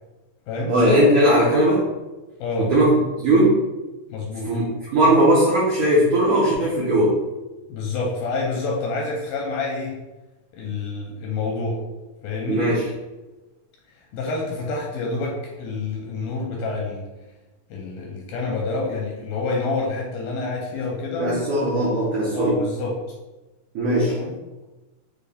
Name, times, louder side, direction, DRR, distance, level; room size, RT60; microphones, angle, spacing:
voice 1, 0.7-1.9 2.6-2.9 3.2-3.6 4.5-4.7 4.9-7.2 12.5-12.9 21.2-22.5 23.8-24.2, right 1 dB, 80° right, -6 dB, 1.7 m, -18 dB
voice 2, 2.4-2.7 4.1-4.5 7.7-9.9 10.5-11.8 12.2-12.7 13.9-17.1 17.7-21.4 22.3-23.0 24.1-24.3, left 3 dB, 85° left, -2 dB, 2.2 m, -28 dB
6.5 x 2.2 x 3.4 m, 1.1 s
omnidirectional pair, 4.6 m